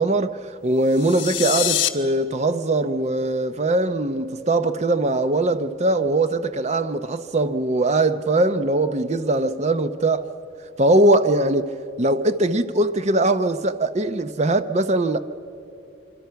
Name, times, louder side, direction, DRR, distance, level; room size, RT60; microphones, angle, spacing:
voice 1, 0.0-10.3 10.8-15.2, right 2 dB, 35° right, 0.7 m, -21 dB
sound 1, 0.8-1.9, left 12 dB, 75° left, 1.1 m, -24 dB
26.5 x 24.5 x 5.8 m
head